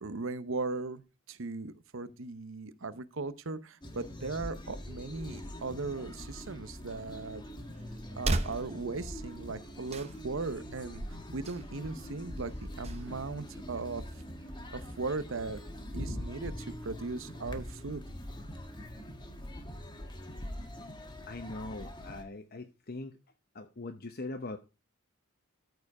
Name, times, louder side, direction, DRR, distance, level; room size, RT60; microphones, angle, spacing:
voice 1, 0.0-7.4 8.2-14.0 14.7-15.6 15.9-18.0, right 3 dB, 60° right, 0.8 m, -38 dB
sound 1, 3.8-22.2, equal, 20° left, 1.5 m, -43 dB
sound 2, 6.8-14.3, right 2 dB, 30° right, 0.8 m, -40 dB
voice 2, 21.3-23.2 23.5-24.6, left 2 dB, 45° left, 0.8 m, -41 dB
13.5 x 4.8 x 4.8 m
head